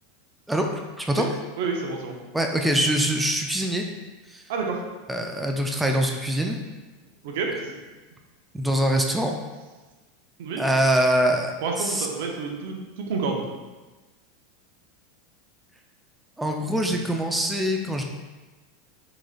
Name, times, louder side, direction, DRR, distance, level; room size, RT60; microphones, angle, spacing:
voice 1, 1.6-2.1 4.5-4.8 7.2-7.8 10.4-10.6 11.6-13.4, right 4 dB, 70° right, 1 dB, 0.6 m, -29 dB
voice 2, 2.3-3.8 4.3-4.4 5.1-6.6 8.5-9.4 10.6-11.5 11.8-12.1 16.4-18.0, right 1 dB, 5° right, 2 dB, 0.3 m, -23 dB
3.8 x 3.0 x 2.4 m, 1.2 s
hypercardioid pair, 100°, 0 cm